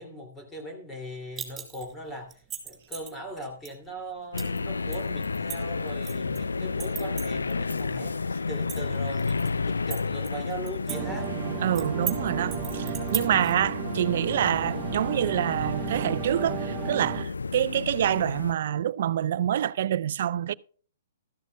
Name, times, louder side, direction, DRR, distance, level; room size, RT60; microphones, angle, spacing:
voice 1, 0.0-11.3, right 1 dB, 15° left, 2.6 m, -40 dB
sound 1, 1.4-1.9 2.3-3.1 3.6-3.7 4.4-4.6 4.9-6.4 6.8-7.8 8.1-8.2 8.5-9.5 9.9-11.0 11.2-11.3 11.7-12.2 12.5-13.5, right 9 dB, 15° right, 4.1 m, -35 dB
sound 2, 4.3-18.5, left 4 dB, 85° left, 0.4 m, -32 dB
sound 3, 10.9-17.2, right 11 dB, 35° right, 1.0 m, -34 dB
voice 2, 11.6-20.5, right 10 dB, 60° right, 0.4 m, -27 dB
13.5 x 13.5 x 2.2 m
hypercardioid pair, 125°, 0 cm